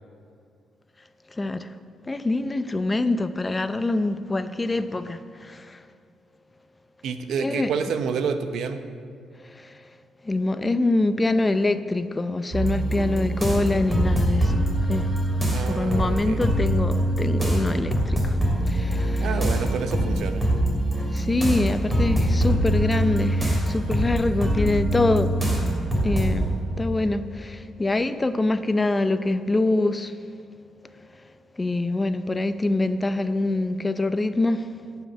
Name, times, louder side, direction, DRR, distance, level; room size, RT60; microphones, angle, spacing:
voice 1, 1.3-1.8 2.0-5.8 7.4-7.7 9.4-9.8 10.2-15.2 15.6-19.3 21.1-25.8 26.0-30.2 31.0-31.1 31.5-34.8, left 2 dB, 20° left, 11 dB, 0.6 m, -25 dB
voice 2, 7.0-8.8 15.5-16.4 19.2-20.4, right 6 dB, 75° right, 8 dB, 0.9 m, -28 dB
sound 1, 12.5-26.6, right 1 dB, 10° right, 2.9 m, -24 dB
11.5 x 5.9 x 9.0 m, 2.2 s
cardioid pair, 90°, 0 cm